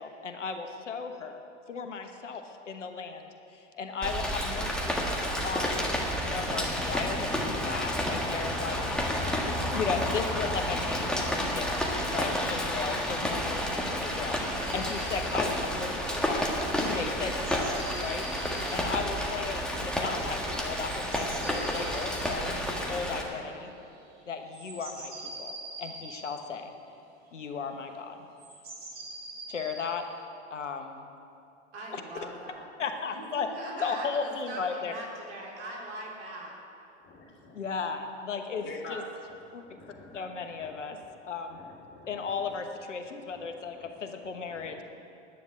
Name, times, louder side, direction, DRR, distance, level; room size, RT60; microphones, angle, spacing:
voice 1, 0.0-1.4 1.7-5.1 5.4-5.9 6.2-8.8 9.4-16.5 16.8-18.3 18.7-23.7 24.3-25.5 25.8-26.7 27.3-28.2 29.5-30.1 30.5-31.1 31.9-32.0 32.8-33.5 33.8-34.9 37.5-39.0 39.5-39.6 40.1-41.6 42.1-44.8, left 5 dB, 85° left, 6 dB, 1.2 m, -36 dB
Rain, 4.0-23.2, equal, ahead, 1.7 m, -30 dB
sound 1, 14.6-15.2 17.2-18.8 20.8-22.4 24.3-26.2 28.4-29.8, right 2 dB, 25° right, 4.0 m, -43 dB
voice 2, 31.7-32.7 33.0-36.5, right 1 dB, 70° right, -2 dB, 3.7 m, -41 dB
voice 3, 37.0-37.6 38.6-39.0 39.6-40.2 40.5-40.7 41.0-41.1 41.5-42.5 43.3-43.5 43.7-43.9 44.2-44.8, left 3 dB, 30° left, -1 dB, 3.2 m, -47 dB
10.0 x 9.7 x 8.8 m, 2.6 s
hypercardioid pair, 100°, 35 cm